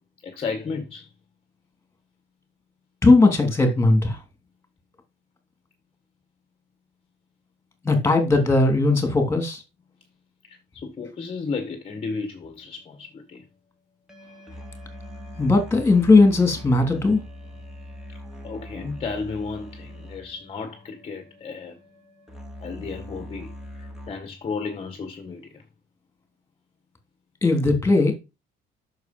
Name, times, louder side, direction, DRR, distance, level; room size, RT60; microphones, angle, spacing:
voice 1, 0.2-1.1 10.4-13.5 18.1-18.2 18.4-21.8 22.6-23.5 23.8-25.6, left 4 dB, 30° left, 1.6 m, -33 dB
voice 2, 3.0-4.2 7.8-9.6 15.4-17.2 27.4-28.1, left 3 dB, 15° left, 3.2 m, -18 dB
sound 1, 12.4-12.6 14.1-24.1, equal, 5° right, 2.9 m, -42 dB
9.3 x 6.7 x 5.4 m
cardioid pair, 135°, 18 cm